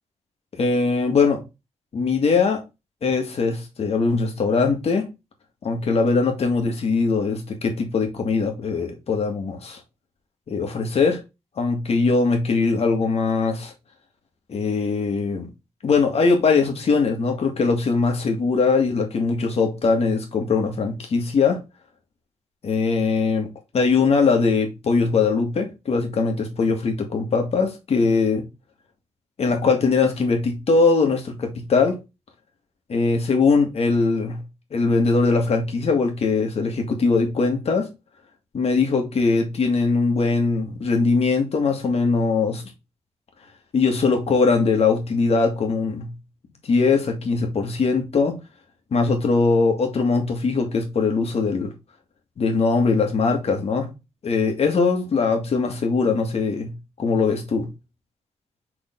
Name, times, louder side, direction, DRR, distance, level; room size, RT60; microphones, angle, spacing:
voice 1, 0.5-1.4 1.9-2.6 3.0-5.1 5.6-9.8 10.5-11.2 11.6-13.7 14.5-15.5 15.8-21.6 22.6-23.5 23.7-28.5 29.4-32.0 32.9-34.4 34.7-37.9 38.5-42.6 43.7-46.1 46.6-48.4 48.9-51.7 52.4-53.9 54.2-56.7 57.0-57.7, left 4 dB, 60° left, 1.9 m, -21 dB
6.4 x 3.9 x 3.8 m
wide cardioid pair, 150°, 12 cm